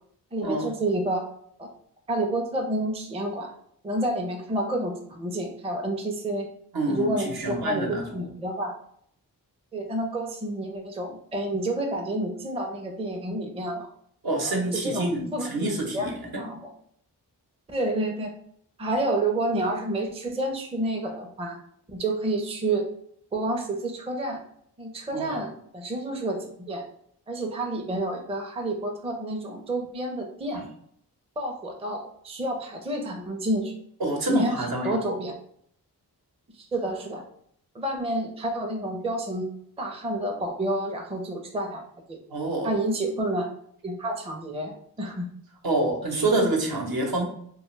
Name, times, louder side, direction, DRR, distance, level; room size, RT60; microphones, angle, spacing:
voice 1, 0.3-1.3 1.6-1.7 2.1-3.5 3.8-6.5 6.9-8.7 9.7-13.9 14.4-16.7 17.7-18.3 18.8-21.6 21.9-22.8 23.3-24.4 24.8-26.8 27.3-30.6 31.4-33.7 34.3-35.3 36.5-37.2 37.7-39.5 39.8-41.8 42.1-42.2 42.6-43.5 43.8-44.7 45.0-45.3, right 1 dB, 15° right, 2 dB, 0.5 m, -29 dB
voice 2, 6.7-8.2 14.2-16.2 25.1-25.4 30.5-30.6 34.0-34.9 42.3-42.7 45.6-47.2, right 2 dB, 60° right, 0 dB, 0.9 m, -27 dB
2.4 x 2.3 x 3.1 m, 0.65 s
cardioid pair, 40°, 41 cm